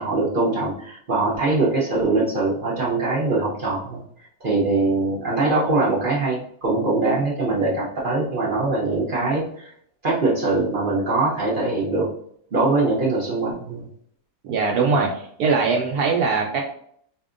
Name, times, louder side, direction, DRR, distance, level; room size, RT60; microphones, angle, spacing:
voice 1, 0.0-4.0 4.4-9.7 10.0-12.1 12.5-13.8, right 3 dB, 45° right, -5 dB, 0.7 m, -22 dB
voice 2, 14.4-16.6, right 4 dB, 75° right, -1 dB, 1.1 m, -21 dB
4.2 x 2.7 x 2.5 m, 0.63 s
omnidirectional pair, 1.7 m